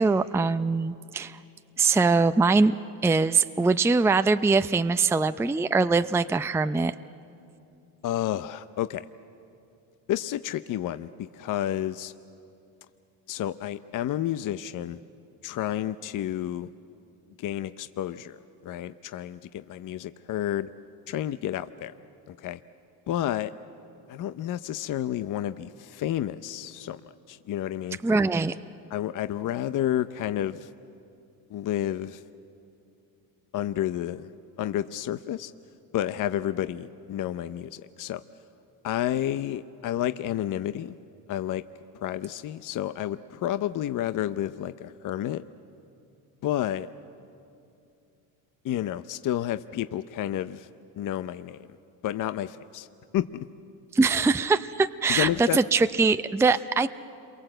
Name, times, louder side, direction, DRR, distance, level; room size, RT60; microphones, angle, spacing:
voice 1, 0.0-1.4 1.8-2.8 3.0-6.9 28.0-28.6 53.9-56.9, right 4 dB, 5° right, 11 dB, 0.5 m, -22 dB
voice 2, 8.0-9.1 10.1-12.1 13.3-15.0 15.4-16.7 17.4-18.4 18.6-20.7 21.1-21.9 22.3-22.6 23.1-23.5 24.1-28.0 28.9-30.7 31.5-32.2 33.5-34.3 34.6-35.5 35.9-38.2 38.8-41.0 41.3-41.6 41.9-45.4 46.4-46.9 48.6-50.7 51.0-51.7 52.0-52.9 53.1-53.5 55.1-55.6, left 12 dB, 45° left, 12 dB, 0.7 m, -30 dB
28.0 x 23.0 x 7.8 m, 2.6 s
supercardioid pair, 90°, 42 cm